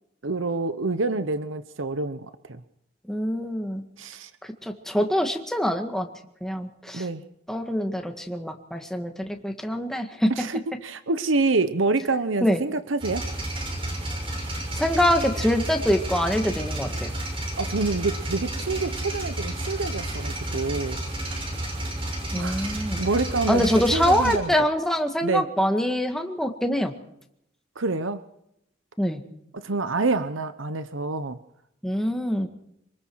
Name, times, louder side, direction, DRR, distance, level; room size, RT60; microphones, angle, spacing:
voice 1, 0.2-2.6 4.0-4.3 6.9-7.2 10.3-13.2 17.6-21.0 22.3-23.6 23.9-24.5 25.2-25.5 27.8-28.2 29.6-31.4, right 3 dB, 85° right, 12 dB, 1.0 m, -27 dB
voice 2, 3.1-3.8 4.4-6.1 6.4-7.1 7.5-10.3 12.4-12.6 14.7-17.1 22.3-23.0 23.5-26.9 29.0-29.2 31.8-32.5, equal, ahead, 4 dB, 1.8 m, -24 dB
sound 1, 13.0-24.4, right 1 dB, 25° right, 6.3 m, -31 dB
27.5 x 20.0 x 4.7 m, 0.79 s
head